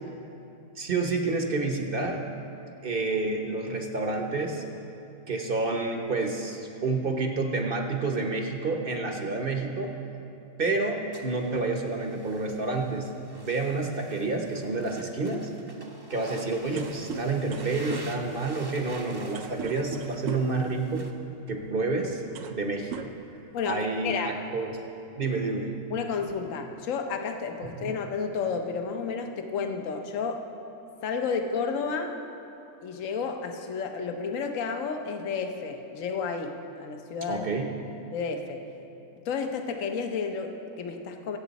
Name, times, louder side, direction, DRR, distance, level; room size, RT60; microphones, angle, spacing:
voice 1, 0.8-2.2 2.8-4.6 5.3-9.9 10.6-15.5 16.1-21.0 21.5-22.2 22.5-23.1 23.6-24.8 25.1-25.7 27.8-27.9 37.3-37.7, right 3 dB, 40° right, 3 dB, 1.0 m, -29 dB
sound 1, 11.1-21.1, right 2 dB, 20° right, 0.7 m, -48 dB
sound 2, 16.8-20.7 21.7-21.8 22.2-22.6 22.9-23.8, right 5 dB, 65° right, 0.8 m, -38 dB
voice 2, 23.5-24.3 25.9-30.5 31.0-32.2 32.8-37.5 38.1-38.6 39.2-41.4, left 5 dB, 55° left, 5 dB, 1.2 m, -31 dB
23.0 x 8.2 x 4.1 m, 2.8 s
omnidirectional pair, 1.8 m